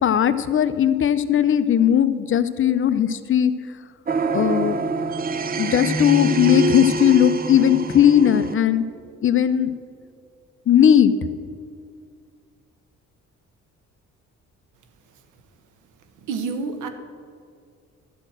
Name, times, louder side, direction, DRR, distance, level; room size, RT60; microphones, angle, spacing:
voice 1, 0.0-3.5 4.3-4.8 5.6-8.8 9.2-9.7 10.7-11.1, left 9 dB, 45° left, 12 dB, 0.6 m, -18 dB
sound 1, 4.1-8.5, right 3 dB, 30° right, 0.7 m, -25 dB
voice 2, 16.2-16.9, right 4 dB, 85° right, 8 dB, 1.0 m, -28 dB
12.5 x 4.3 x 7.6 m, 2.2 s
cardioid pair, 90°, 30 cm